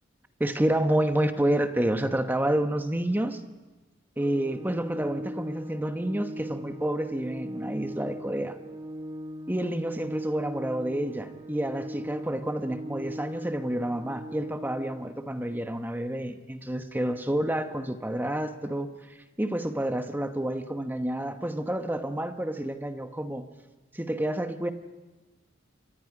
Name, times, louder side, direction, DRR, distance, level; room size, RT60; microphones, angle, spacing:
voice 1, 0.4-3.4 4.2-8.6 9.5-23.5 23.9-24.7, right 1 dB, 10° right, 7 dB, 1.1 m, -29 dB
Organ, 4.2-15.1, equal, 25° right, 1.4 m, -40 dB
28.5 x 24.5 x 5.0 m, 1.2 s
head